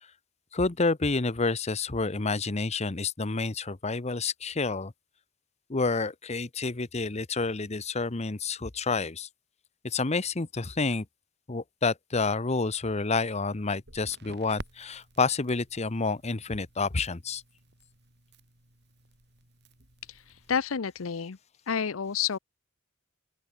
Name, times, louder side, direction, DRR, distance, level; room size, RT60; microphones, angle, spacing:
voice 1, 0.5-4.9 5.7-9.3 9.8-11.0 11.5-17.4, left 3 dB, 35° left, 0.9 m, -29 dB
Crackle, 13.8-20.5, right 1 dB, 55° right, 5.5 m, -51 dB
voice 2, 20.5-21.4 21.7-22.4, left 7 dB, 85° left, 0.7 m, -29 dB
open air
head